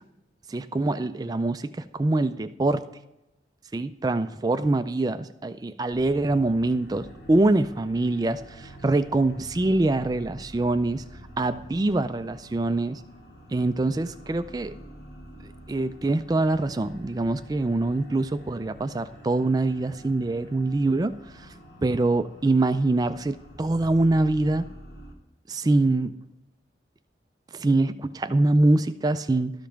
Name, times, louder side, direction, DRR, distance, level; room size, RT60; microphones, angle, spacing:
voice 1, 0.5-2.8 3.7-11.0 11.4-13.0 13.5-14.7 15.7-21.1 21.8-24.6 25.5-26.1 27.5-29.5, right 2 dB, 20° right, 11 dB, 0.3 m, -24 dB
sound 1, 5.9-25.1, equal, 70° left, 2.4 m, -47 dB
13.0 x 5.2 x 5.8 m, 0.91 s
head